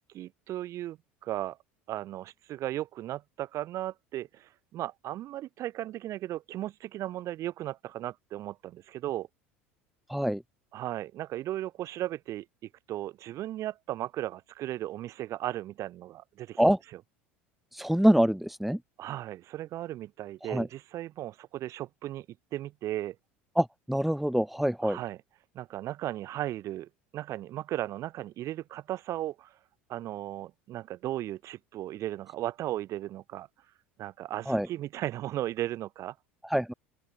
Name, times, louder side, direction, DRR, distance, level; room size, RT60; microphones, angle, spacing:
voice 1, 0.1-1.6 1.9-9.3 10.7-12.5 12.9-16.6 16.9-17.0 19.0-22.3 22.5-23.2 24.8-25.2 25.5-29.6 29.9-33.5 34.0-36.1, right 14 dB, 50° right, 6.3 m, -36 dB
voice 2, 10.1-10.4 16.6-16.8 17.7-18.8 20.5-20.7 23.6-25.0 34.5-34.7 36.4-36.7, equal, ahead, 2.9 m, -25 dB
open air
hypercardioid pair, 80°, 6 cm